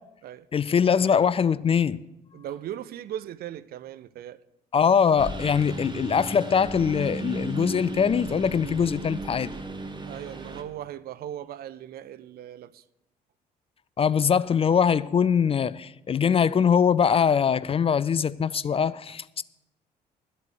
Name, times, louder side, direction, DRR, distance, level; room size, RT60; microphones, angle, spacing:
voice 1, 0.5-2.0 4.7-9.5 14.0-19.4, left 7 dB, 25° left, 0.4 m, -22 dB
voice 2, 2.3-4.4 10.1-12.8, right 11 dB, 45° right, 0.5 m, -38 dB
Engine, 5.2-10.6, right 2 dB, 20° right, 1.5 m, -35 dB
12.5 x 8.2 x 6.4 m
figure-of-eight pair, 50°, 21 cm